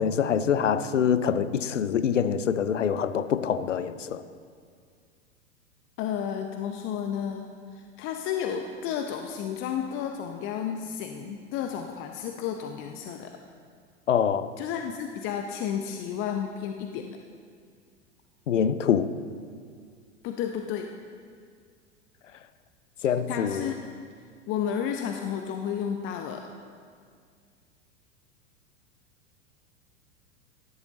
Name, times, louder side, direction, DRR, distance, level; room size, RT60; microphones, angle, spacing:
voice 1, 0.0-4.2 14.1-14.5 18.5-19.2 23.0-23.7, left 8 dB, 80° left, 13 dB, 0.7 m, -25 dB
voice 2, 6.0-7.5 7.7-13.3 14.6-17.1 20.2-20.9 23.3-23.9 24.5-26.5, left 8 dB, 35° left, 4 dB, 0.7 m, -32 dB
14.0 x 10.5 x 4.0 m, 2.1 s
figure-of-eight pair, 90°, 37 cm